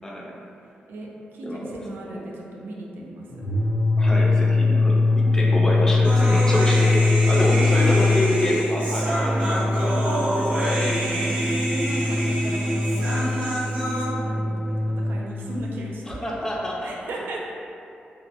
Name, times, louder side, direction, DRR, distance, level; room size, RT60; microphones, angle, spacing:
voice 1, 0.0-0.3 1.4-1.7 2.1-2.2 4.0-7.0 7.3-10.0 16.1-16.9, left 1 dB, 15° left, -3 dB, 0.4 m, -27 dB
voice 2, 0.9-3.4 5.1-5.6 7.4-8.0 10.1-16.3 16.8-17.4, right 1 dB, 85° right, -2 dB, 0.4 m, -36 dB
sound 1, 3.3-15.2, left 3 dB, 80° left, 0.5 m, -22 dB
Human voice, 6.0-14.1, right 1 dB, 50° right, 0.7 m, -27 dB
2.4 x 2.0 x 2.7 m, 2.6 s
wide cardioid pair, 110°, 3 cm